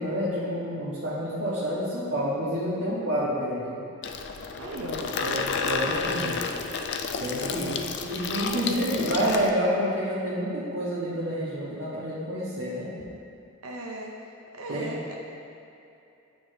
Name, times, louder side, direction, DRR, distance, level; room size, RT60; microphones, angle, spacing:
voice 1, 0.0-3.8 5.0-6.4 7.2-7.8 8.1-12.9 14.7-14.9, equal, 65° right, -9 dB, 1.1 m, -29 dB
Water tap faucet / Sink (filling or washing), 4.0-9.5, left 5 dB, 55° left, 0.3 m, -31 dB
voice 2, 4.6-6.3 7.9-8.2 13.6-14.2 14.5-15.2, right 2 dB, 85° right, -1 dB, 0.6 m, -38 dB
9.3 x 4.2 x 2.6 m, 2.7 s
head